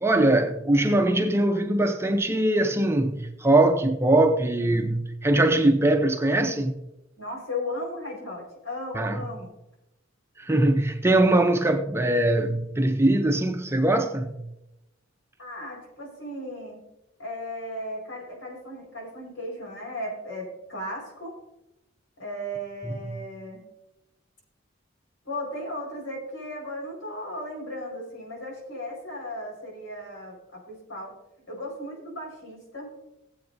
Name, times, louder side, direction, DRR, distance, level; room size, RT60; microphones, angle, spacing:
voice 1, 0.0-6.7 8.9-9.1 10.4-14.4 22.9-23.1, right 1 dB, 15° right, 0.6 m, -22 dB
voice 2, 7.2-9.5 15.4-16.8 17.2-21.4 22.2-23.6 25.2-31.1 31.5-32.9, left 1 dB, 75° left, 4.7 m, -36 dB
18.5 x 7.9 x 2.6 m
head